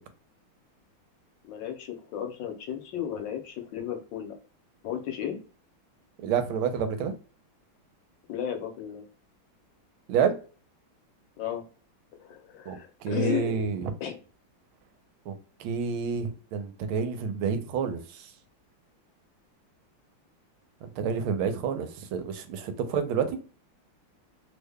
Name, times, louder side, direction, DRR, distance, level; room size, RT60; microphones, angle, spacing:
voice 1, 1.5-4.4 4.8-5.4 8.3-9.0 11.4-11.6 12.2-13.6 14.0-14.2, left 9 dB, 75° left, 1.3 m, -34 dB
voice 2, 6.2-7.1 10.1-10.3 12.7-13.9 15.3-15.4 15.6-18.3 21.0-23.4, right 6 dB, 85° right, 1.5 m, -29 dB
3.4 x 2.1 x 3.4 m
omnidirectional pair, 2.3 m